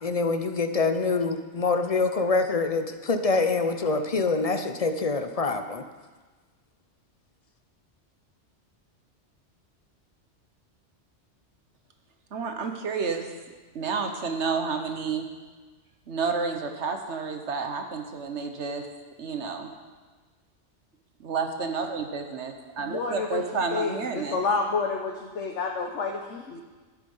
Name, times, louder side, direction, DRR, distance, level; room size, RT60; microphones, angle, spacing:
voice 1, 0.0-5.8, left 3 dB, 35° left, 8 dB, 0.7 m, -25 dB
voice 2, 12.3-13.3 13.7-15.2 16.1-18.8 19.2-19.7 21.2-24.4, right 5 dB, 75° right, 5 dB, 1.3 m, -30 dB
voice 3, 22.9-23.4 23.7-26.6, left 4 dB, 90° left, 2 dB, 1.3 m, -29 dB
11.5 x 10.0 x 5.5 m, 1.3 s
omnidirectional pair, 1.2 m